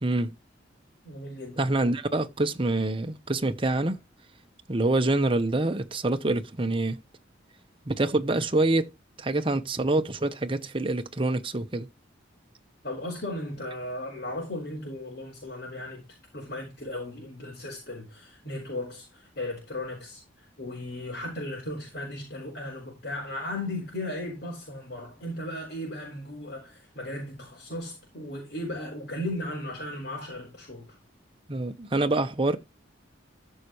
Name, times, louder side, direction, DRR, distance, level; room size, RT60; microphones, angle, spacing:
voice 1, 0.0-0.3 1.6-4.0 4.7-7.0 7.9-8.9 9.2-11.9 31.5-32.6, right 2 dB, 30° right, 0.9 m, -26 dB
voice 2, 1.0-1.6 12.8-31.0, left 1 dB, 55° left, 5.0 m, -36 dB
14.5 x 6.5 x 3.1 m
head